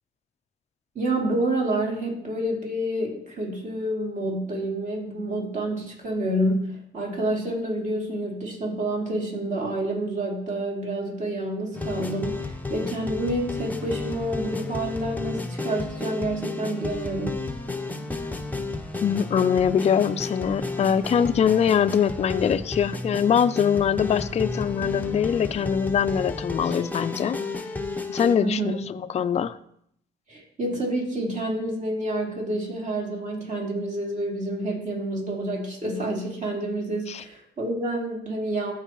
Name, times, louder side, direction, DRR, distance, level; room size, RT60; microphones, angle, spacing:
voice 1, 0.9-17.4 28.4-28.7 30.3-38.7, right 1 dB, 40° right, -2 dB, 2.7 m, -28 dB
sound 1, 11.7-28.4, left 3 dB, 10° left, 0.8 m, -32 dB
voice 2, 19.0-27.4 28.1-29.6 37.1-37.2, left 8 dB, 35° left, 11 dB, 0.4 m, -23 dB
13.0 x 4.6 x 3.0 m, 0.71 s
cardioid pair, 90°, 20 cm